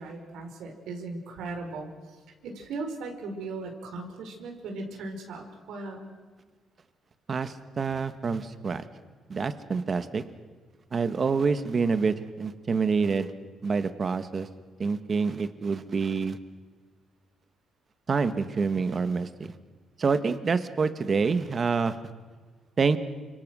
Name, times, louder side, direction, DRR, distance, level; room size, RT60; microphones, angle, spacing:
voice 1, 0.0-6.1, right 3 dB, 85° right, 3 dB, 4.8 m, -38 dB
voice 2, 7.3-8.9 9.3-10.2 10.9-13.3 13.6-14.5 14.8-16.4 18.1-19.5 20.0-22.0 22.8-23.0, right 5 dB, 35° right, 10 dB, 1.5 m, -27 dB
29.0 x 26.0 x 6.4 m, 1.4 s
cardioid pair, 140°, 0 cm